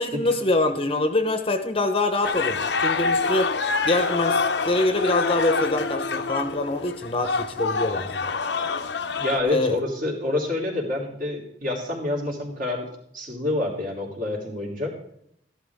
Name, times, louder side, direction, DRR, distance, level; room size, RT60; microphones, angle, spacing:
voice 1, 0.0-3.5 3.8-8.3 9.5-9.8, left 2 dB, 30° left, 7 dB, 0.9 m, -24 dB
sound 1, 2.2-9.4, left 4 dB, 75° left, 0.8 m, -26 dB
voice 2, 9.1-12.9 13.1-14.9, left 2 dB, 50° right, -1 dB, 3.2 m, -27 dB
13.5 x 11.5 x 3.6 m, 0.72 s
head